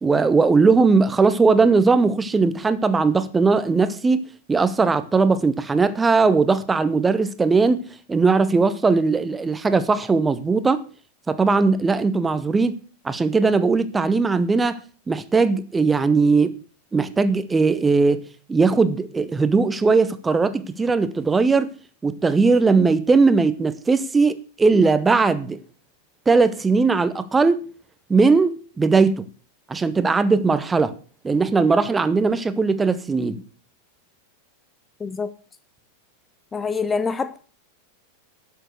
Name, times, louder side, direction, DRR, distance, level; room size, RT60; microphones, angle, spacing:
voice 1, 0.0-4.2 4.5-10.8 11.3-12.8 13.0-14.8 15.1-16.5 16.9-18.2 18.5-21.7 22.0-25.6 26.3-27.6 28.1-29.2 29.7-30.9 31.2-33.4, right 4 dB, 15° right, 0.8 m, -19 dB
voice 2, 35.0-35.3 36.5-37.4, left 5 dB, 15° left, 0.6 m, -25 dB
12.0 x 6.8 x 6.6 m
figure-of-eight pair, 90°, 0 cm